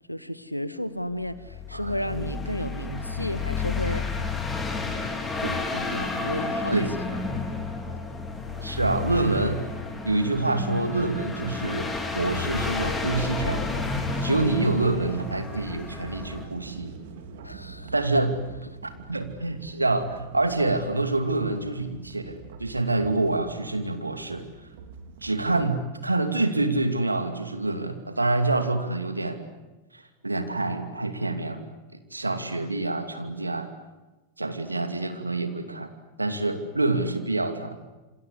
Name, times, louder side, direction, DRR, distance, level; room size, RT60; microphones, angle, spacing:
voice 1, 0.1-4.1 5.4-6.8 17.4-18.3, equal, 90° left, 14 dB, 1.5 m, -32 dB
sound 1, 1.3-16.5, left 4 dB, 10° left, 4.3 m, -31 dB
voice 2, 8.6-9.7 10.0-13.7 14.2-16.9 17.9-18.3 18.8-24.5 25.2-29.4 29.9-31.6 32.1-33.7 34.4-35.9 36.2-37.8, right 2 dB, 80° right, 7 dB, 2.7 m, -26 dB
sound 2, 12.8-25.6, right 4 dB, 55° right, 3.4 m, -44 dB
27.5 x 26.0 x 8.2 m, 1.1 s
figure-of-eight pair, 90°, 0 cm